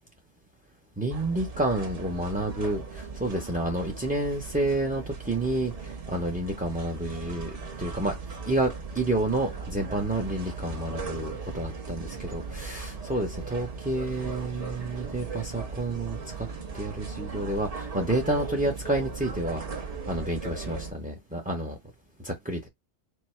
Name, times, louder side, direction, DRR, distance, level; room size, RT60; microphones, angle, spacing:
voice 1, 1.0-8.1 8.5-16.5 16.7-21.8 22.2-22.7, right 1 dB, 10° right, 0.5 m, -30 dB
sound 1, 1.1-20.9, right 4 dB, 35° right, 1.0 m, -38 dB
4.7 x 2.1 x 4.3 m
omnidirectional pair, 1.2 m